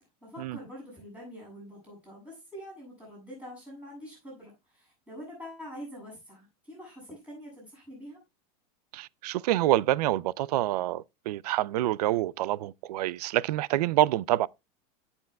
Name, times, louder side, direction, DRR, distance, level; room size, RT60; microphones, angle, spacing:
voice 1, 0.2-8.2, equal, 5° right, 7.6 m, -45 dB
voice 2, 8.9-14.5, right 14 dB, 75° right, 0.5 m, -27 dB
17.0 x 7.1 x 2.3 m
supercardioid pair, 180°, 20 cm